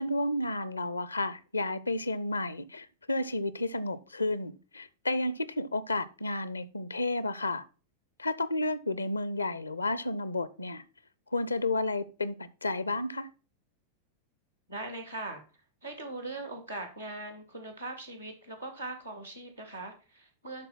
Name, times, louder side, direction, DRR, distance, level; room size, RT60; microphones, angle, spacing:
voice 1, 0.0-7.6 8.2-10.8 11.3-13.3, left 2 dB, 80° left, 0.6 m, -32 dB
voice 2, 14.7-15.4 15.8-20.7, right 2 dB, 90° right, 2.5 m, -40 dB
11.5 x 4.4 x 4.2 m
figure-of-eight pair, 90°, 0 cm